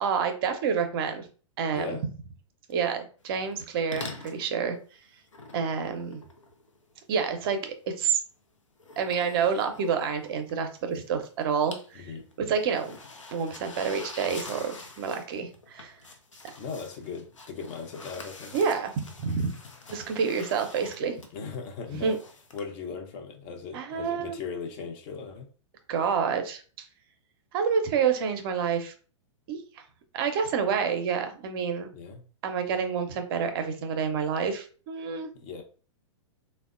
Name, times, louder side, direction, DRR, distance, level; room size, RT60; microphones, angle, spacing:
voice 1, 0.0-1.3 1.6-2.0 2.7-4.8 5.5-6.2 7.1-8.2 9.0-12.1 12.4-13.0 13.3-15.9 18.5-18.9 19.2-19.5 19.9-21.2 22.0-22.2 23.7-24.4 25.9-26.6 27.5-28.9 29.5-29.6 30.1-31.9 32.4-35.3, right 6 dB, 50° right, 7 dB, 0.5 m, -28 dB
sound 1, 3.4-3.7 3.9-4.5 5.3-7.0 8.8-11.0 11.2-11.9 12.2-22.6, left 3 dB, 85° left, 0.6 m, -46 dB
voice 2, 16.6-18.6 21.3-22.1 22.5-25.5 31.9-32.2 35.3-35.6, left 5 dB, 40° left, 3 dB, 0.7 m, -38 dB
3.3 x 2.1 x 2.4 m, 0.39 s
hypercardioid pair, 110°, 16 cm